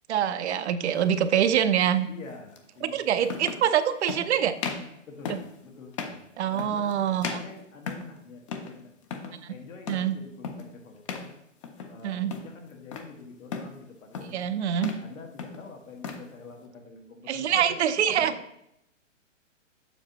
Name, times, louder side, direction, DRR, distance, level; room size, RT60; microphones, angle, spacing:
voice 1, 0.1-2.1 2.8-4.5 6.4-7.4 9.4-9.5 9.9-10.2 12.0-12.3 14.3-14.9 17.3-18.3, right 9 dB, 60° right, 11 dB, 0.6 m, -25 dB
sound 1, 1.0-1.2 2.6-2.7 3.2-3.7 4.1-4.3 4.6-4.9 5.3-5.5 5.9-6.2 6.6-6.9 7.2-8.2 8.5-8.8 9.0-9.4 9.9-10.1 10.4-10.7 11.1-11.3 11.6-12.0 12.3-13.1 13.5-13.8 14.1-14.4 14.7-15.1 15.4-16.3, left 5 dB, 25° left, 0.4 m, -36 dB
voice 2, 2.1-3.3 5.1-6.2 6.5-7.0 7.3-8.9 9.2-11.3 11.9-17.8 18.1-18.3, left 4 dB, 85° left, 2 dB, 1.7 m, -46 dB
7.1 x 5.9 x 2.8 m, 0.79 s
hypercardioid pair, 145°, 38 cm